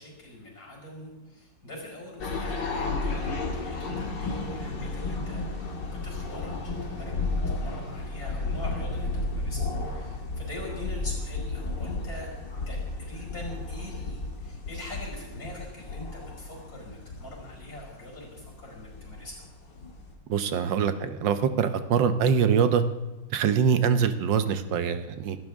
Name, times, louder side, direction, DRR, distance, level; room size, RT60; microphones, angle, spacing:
voice 1, 0.0-9.6 9.9-12.3 12.7-19.4, left 1 dB, 50° left, -1 dB, 5.9 m, -43 dB
sound 1, 2.2-20.1, left 3 dB, 70° left, 2.6 m, -33 dB
voice 2, 20.3-22.8 23.3-25.4, right 7 dB, 90° right, 10 dB, 1.6 m, -24 dB
25.0 x 13.0 x 3.6 m, 1.1 s
omnidirectional pair, 1.9 m